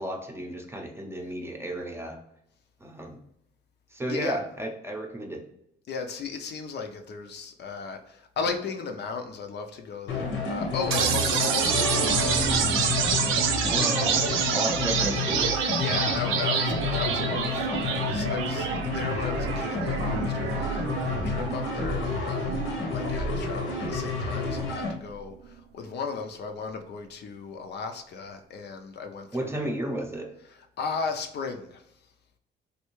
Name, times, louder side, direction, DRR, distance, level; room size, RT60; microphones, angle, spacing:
voice 1, 0.0-2.2 2.8-3.2 3.9-5.4 13.7-15.6 29.3-30.3, right 1 dB, 10° right, 0.6 m, -33 dB
voice 2, 4.0-4.4 5.9-12.6 15.8-29.7 30.8-31.8, left 5 dB, 60° left, 0.5 m, -35 dB
sound 1, 10.1-24.9, left 4 dB, 85° left, 0.9 m, -30 dB
sound 2, 10.9-24.9, right 7 dB, 85° right, 0.5 m, -28 dB
sound 3, 11.7-15.4, left 1 dB, 10° left, 0.8 m, -34 dB
3.3 x 2.7 x 3.0 m
cardioid pair, 90°, 20 cm